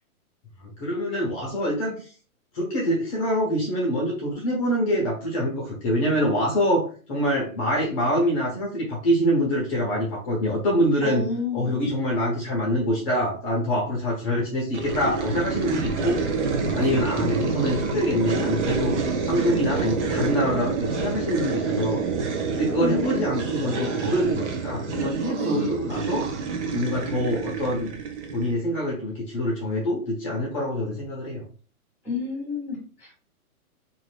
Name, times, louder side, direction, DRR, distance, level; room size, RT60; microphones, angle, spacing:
voice 1, 0.6-2.1 2.5-11.2 11.5-16.2 16.7-19.0 19.3-22.0 22.5-26.3 26.6-27.9 28.3-31.4, equal, 25° left, -3 dB, 0.7 m, -25 dB
voice 2, 11.0-11.7 16.8-17.0 22.8-23.5 25.4-25.8 32.0-33.1, left 3 dB, 5° right, -5 dB, 0.8 m, -31 dB
sound 1, 14.7-28.6, right 4 dB, 55° right, 0.7 m, -27 dB
2.5 x 2.5 x 3.2 m, 0.39 s
hypercardioid pair, 145°, 44 cm